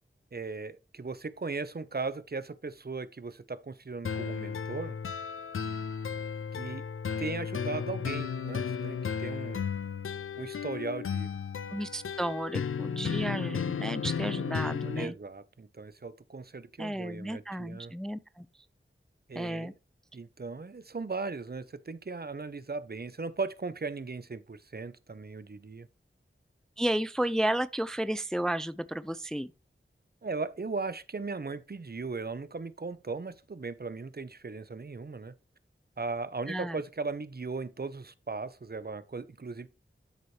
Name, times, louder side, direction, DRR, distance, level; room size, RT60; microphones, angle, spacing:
voice 1, 0.3-5.0 6.5-6.8 7.2-9.6 10.4-11.4 15.0-17.9 19.3-19.7 20.1-25.9 30.2-35.3 36.0-39.7, right 4 dB, 50° right, 0.7 m, -37 dB
sound 1, 4.0-15.0, left 6 dB, 80° left, 0.5 m, -34 dB
voice 2, 11.7-15.1 16.8-18.5 19.3-19.7 26.8-29.5 36.5-36.8, right 1 dB, 5° left, 0.4 m, -32 dB
12.5 x 4.2 x 3.3 m
wide cardioid pair, 55°, 21 cm